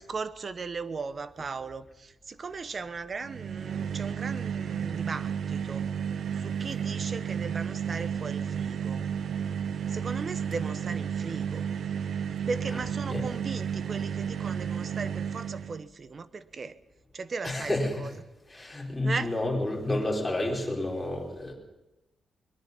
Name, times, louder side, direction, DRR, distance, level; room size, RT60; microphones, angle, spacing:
voice 1, 0.0-5.9 6.4-9.1 9.9-11.7 12.5-16.8 17.1-17.7 18.0-18.1 19.0-19.3, right 4 dB, 35° right, 13 dB, 1.1 m, -37 dB
sound 1, 3.2-15.8, right 8 dB, 60° right, 0.8 m, -32 dB
voice 2, 17.4-18.1 18.5-21.5, left 1 dB, 10° left, -1 dB, 5.1 m, -30 dB
22.5 x 21.5 x 5.5 m, 0.97 s
wide cardioid pair, 155°, 0 cm